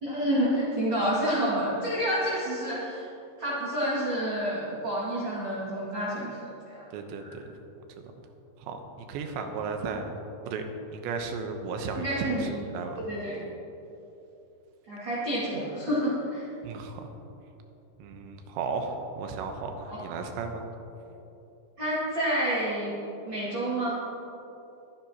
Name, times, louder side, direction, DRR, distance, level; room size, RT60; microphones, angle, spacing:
voice 1, 0.0-3.1 3.4-6.8 7.2-7.3 11.9-12.5 13.0-13.4 14.9-16.4 19.9-20.0 21.8-22.9 23.3-24.0, right 1 dB, 35° right, -8 dB, 2.0 m, -29 dB
voice 2, 6.9-7.5 8.6-10.2 10.5-10.6 10.9-12.1 12.4-13.0 16.6-17.1 18.0-20.6, right 4 dB, 85° right, 5 dB, 3.2 m, -35 dB
22.0 x 10.5 x 2.9 m, 3.0 s
omnidirectional pair, 5.1 m